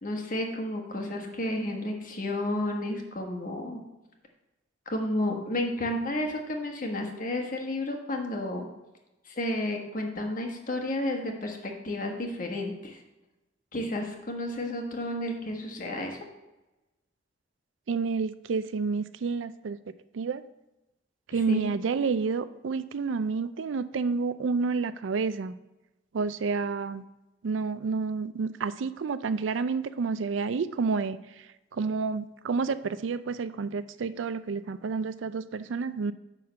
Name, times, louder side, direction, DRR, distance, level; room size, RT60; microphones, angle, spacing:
voice 1, 0.0-3.8 4.9-8.7 9.3-13.0 13.7-16.2 21.5-21.7, left 1 dB, 45° left, 2 dB, 1.4 m, -31 dB
voice 2, 17.9-19.8 20.1-20.4 21.3-25.5 26.1-27.0 27.4-31.2 31.7-36.1, right 4 dB, 90° right, 13 dB, 0.4 m, -29 dB
10.0 x 3.7 x 6.5 m, 1.0 s
head